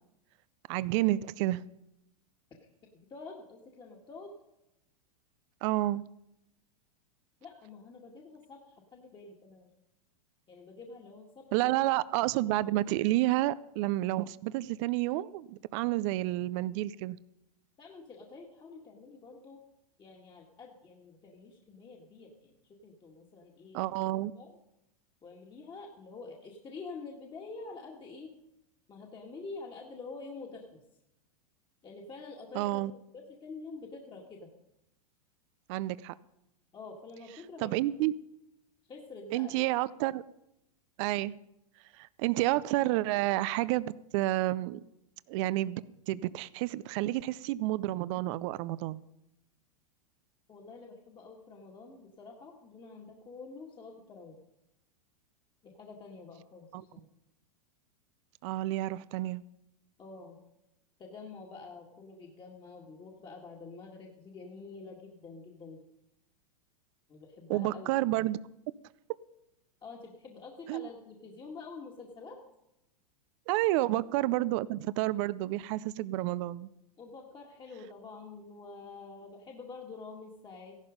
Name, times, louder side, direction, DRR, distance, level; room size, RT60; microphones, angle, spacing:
voice 1, 0.7-1.6 5.6-6.0 11.5-17.2 23.7-24.3 32.5-32.9 35.7-36.1 37.6-38.1 39.3-40.2 41.0-41.3 41.9-44.8 45.3-49.0 56.7-56.8 58.4-59.4 67.5-68.4 70.7-70.9 73.5-76.7, right 17 dB, 50° right, 18 dB, 0.6 m, -30 dB
voice 2, 3.1-4.3 7.4-9.7 10.5-11.4 17.8-19.6 20.0-22.6 22.8-23.8 24.3-24.5 25.2-28.3 28.9-30.8 31.8-34.5 36.7-37.7 38.9-39.6 50.5-54.3 55.6-56.7 56.9-57.1 60.0-60.4 61.0-65.8 67.1-67.9 69.8-72.4 73.6-73.8 74.3-74.4 77.0-80.8, left 4 dB, 25° left, 0 dB, 2.0 m, -47 dB
15.0 x 11.5 x 5.2 m, 0.86 s
hypercardioid pair, 105°, 20 cm